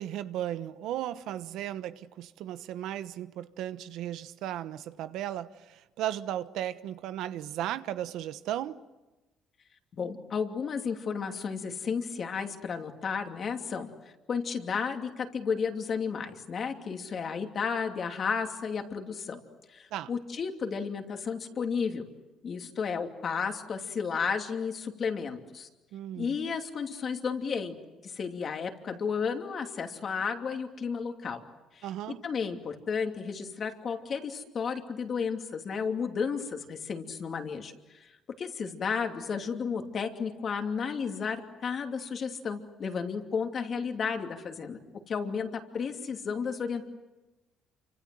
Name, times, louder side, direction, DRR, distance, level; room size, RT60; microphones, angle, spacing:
voice 1, 0.0-8.8 19.9-20.1 25.9-26.4 31.8-32.2, right 12 dB, 80° right, 1.1 m, -35 dB
voice 2, 9.9-13.9 14.3-19.4 19.7-22.1 22.4-25.7 26.2-27.7 28.0-31.4 31.7-31.9 32.2-38.1 38.4-44.8 45.1-46.9, left 6 dB, 40° left, 2.8 m, -33 dB
28.5 x 25.5 x 7.8 m
cardioid pair, 130°, 0 cm